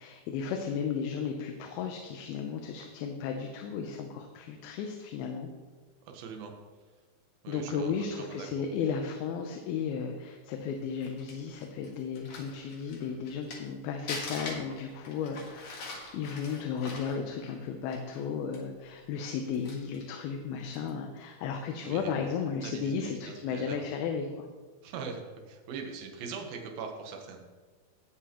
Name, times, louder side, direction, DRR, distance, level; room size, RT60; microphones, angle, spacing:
voice 1, 0.0-5.5 7.5-24.5, left 6 dB, 80° left, 4 dB, 2.6 m, -34 dB
voice 2, 6.0-6.5 7.4-8.5 21.8-22.1 22.6-22.9 23.3-23.9 24.8-27.4, right 5 dB, 75° right, 2 dB, 2.8 m, -41 dB
Crumpling crinkling, 10.8-13.7 14.1-18.2 18.5-18.6 19.2-20.1 20.7-20.9, left 3 dB, 55° left, 2.4 m, -42 dB
18.0 x 6.7 x 3.0 m, 1.4 s
omnidirectional pair, 4.4 m